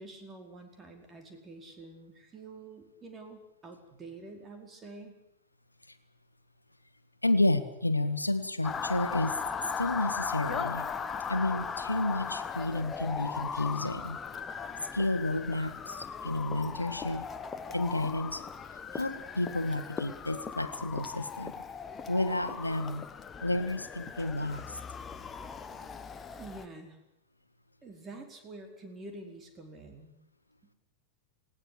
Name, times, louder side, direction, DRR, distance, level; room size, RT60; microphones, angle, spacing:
voice 1, 0.0-5.2 26.4-27.0 27.8-30.1, right 2 dB, 20° right, 5 dB, 4.7 m, -47 dB
voice 2, 7.2-9.4 9.8-10.9 11.3-14.2 14.9-17.3 17.7-18.4 18.9-21.6 22.1-23.0 23.4-24.8, left 2 dB, 90° left, 9 dB, 1.4 m, -31 dB
Motor vehicle (road) / Siren, 8.6-26.7, left 6 dB, 20° left, 1.3 m, -38 dB
19.5 x 17.5 x 9.9 m, 0.82 s
figure-of-eight pair, 90°, 0 cm